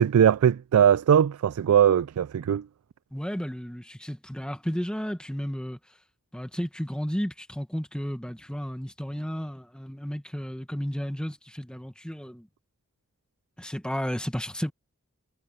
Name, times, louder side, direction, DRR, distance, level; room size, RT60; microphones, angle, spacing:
voice 1, 0.0-2.7, right 8 dB, 90° right, 0.3 m, -20 dB
voice 2, 3.1-5.8 6.3-12.5 13.6-14.7, equal, 5° left, 1.5 m, -33 dB
head